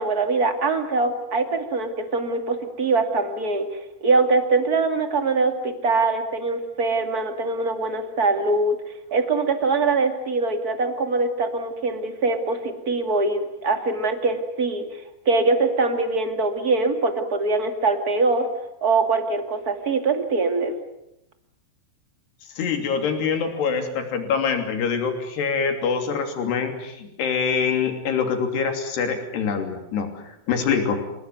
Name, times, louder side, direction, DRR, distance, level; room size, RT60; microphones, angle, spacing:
voice 1, 0.0-3.7 4.0-8.8 9.1-14.9 15.3-18.5 18.8-20.7, right 3 dB, 30° right, 7 dB, 2.3 m, -23 dB
voice 2, 22.6-31.0, left 6 dB, 90° left, 5 dB, 5.1 m, -25 dB
28.0 x 18.5 x 9.5 m, 0.84 s
omnidirectional pair, 4.6 m